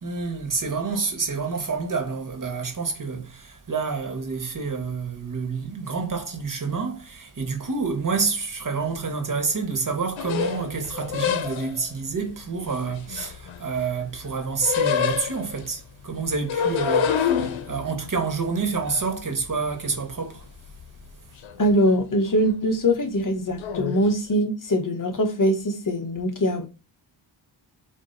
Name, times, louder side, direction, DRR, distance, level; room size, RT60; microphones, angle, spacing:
voice 1, 0.0-20.5, right 4 dB, 45° right, 1.9 m, -28 dB
sound 1, 10.2-11.9 12.6-13.9 14.2-15.7 16.3-20.1 20.4-21.1 21.4-21.9 22.3-22.5 23.6-24.0, left 7 dB, 85° left, 1.0 m, -27 dB
voice 2, 21.6-26.7, equal, 45° left, 1.5 m, -22 dB
7.9 x 3.0 x 4.3 m
cardioid pair, 100°, 46 cm